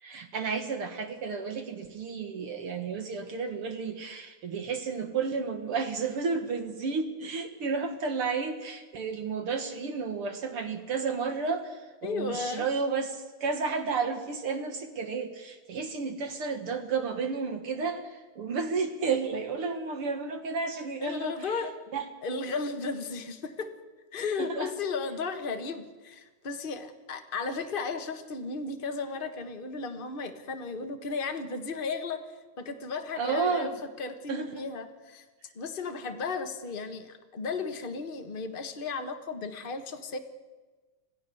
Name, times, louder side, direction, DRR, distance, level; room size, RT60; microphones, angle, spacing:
voice 1, 0.0-21.6 21.9-22.1 24.4-24.7 33.2-33.7 34.3-34.5, right 5 dB, 50° right, 8 dB, 2.1 m, -32 dB
voice 2, 12.0-12.7 21.0-21.7 22.2-23.7 24.1-33.7 34.0-35.2 35.5-40.2, left 4 dB, 70° left, 6 dB, 0.5 m, -35 dB
26.0 x 16.0 x 7.1 m, 1.3 s
omnidirectional pair, 3.5 m